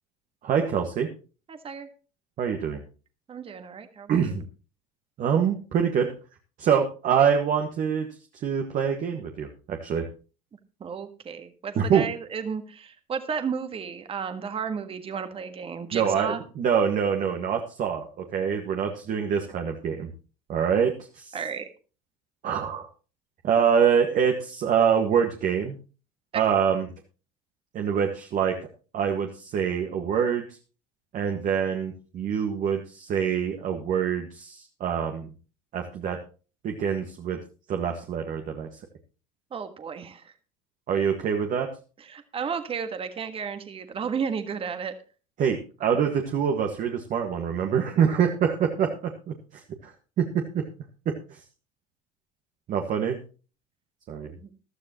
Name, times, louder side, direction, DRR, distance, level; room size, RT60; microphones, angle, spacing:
voice 1, 0.4-1.1 2.4-2.8 4.1-4.5 5.2-6.1 6.6-8.1 8.4-10.1 11.8-12.0 15.9-20.1 20.5-21.4 22.4-22.9 23.4-25.8 26.3-26.9 27.7-28.6 28.9-30.4 31.1-35.3 35.7-36.2 36.6-37.4 37.7-38.7 40.9-41.7 45.4-49.3 49.8-50.6 51.1-51.4 52.7-53.2 54.1-54.3, right 7 dB, 50° right, 3 dB, 1.7 m, -25 dB
voice 2, 1.5-1.9 3.3-4.4 10.8-16.4 21.3-21.7 26.3-26.5 39.5-40.3 42.0-44.9 54.3-54.5, right 6 dB, 35° right, 9 dB, 1.5 m, -33 dB
15.0 x 12.5 x 3.0 m, 0.35 s
hypercardioid pair, 75°, 17 cm